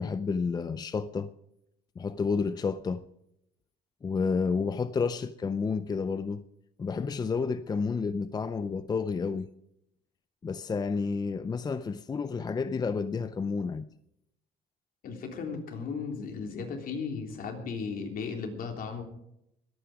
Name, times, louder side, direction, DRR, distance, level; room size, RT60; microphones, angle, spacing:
voice 1, 0.0-1.3 2.0-3.1 4.0-6.4 6.8-9.5 10.4-13.9, left 5 dB, 25° left, 0.5 m, -30 dB
voice 2, 15.0-19.0, left 5 dB, 60° left, 3.3 m, -36 dB
22.0 x 9.2 x 4.9 m
cardioid pair, 110°, 17 cm